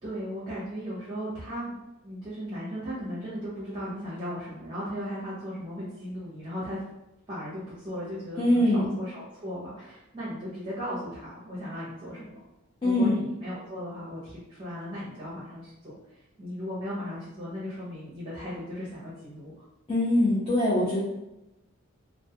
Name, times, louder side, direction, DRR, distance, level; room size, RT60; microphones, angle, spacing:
voice 1, 0.0-1.7 2.0-6.8 7.3-12.4 12.8-19.5, equal, 25° right, -8 dB, 0.7 m, -37 dB
voice 2, 8.4-8.9 12.8-13.2 19.9-21.0, left 1 dB, 25° left, -7 dB, 0.5 m, -23 dB
2.2 x 2.0 x 2.7 m, 0.92 s
head